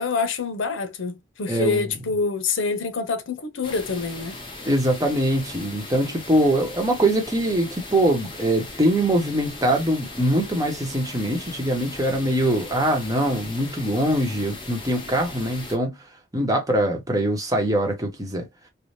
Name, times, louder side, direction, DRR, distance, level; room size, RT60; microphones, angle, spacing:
voice 1, 0.0-4.4, left 4 dB, 85° left, 0.6 m, -26 dB
voice 2, 1.5-1.9 4.6-16.0 16.3-18.5, right 1 dB, 20° right, 0.9 m, -23 dB
sound 1, 3.6-15.8, left 2 dB, 25° left, 0.8 m, -38 dB
3.3 x 2.1 x 2.6 m
head